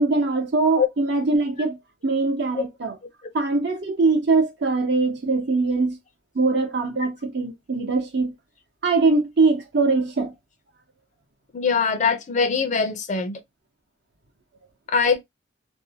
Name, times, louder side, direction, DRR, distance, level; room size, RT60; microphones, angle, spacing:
voice 1, 0.0-1.8 2.0-3.0 3.3-6.0 6.3-8.3 8.8-10.3, right 3 dB, 65° right, 0.7 m, -22 dB
voice 2, 11.5-13.4 14.9-15.2, left 5 dB, 45° left, 0.5 m, -22 dB
2.6 x 2.1 x 2.7 m
head